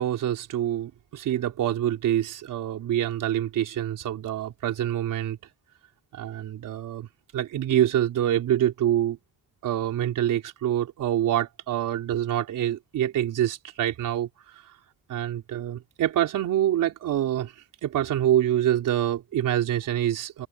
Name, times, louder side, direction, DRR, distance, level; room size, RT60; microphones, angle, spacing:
voice 1, 0.0-5.4 6.1-7.1 7.3-9.2 9.6-14.5 15.1-17.5 17.8-20.5, right 11 dB, 85° right, 4.1 m, -26 dB
cardioid pair, 170°, 31 cm